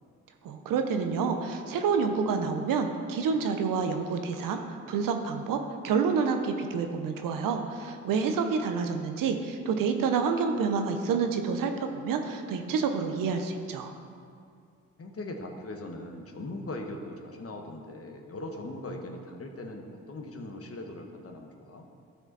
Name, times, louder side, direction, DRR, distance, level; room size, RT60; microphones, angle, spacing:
voice 1, 0.4-4.6 4.9-5.6 5.8-13.9, right 5 dB, 75° right, 6 dB, 0.8 m, -28 dB
voice 2, 15.0-21.8, left 2 dB, 45° left, 3 dB, 1.2 m, -40 dB
12.5 x 4.9 x 4.1 m, 2.3 s
supercardioid pair, 55°, 33 cm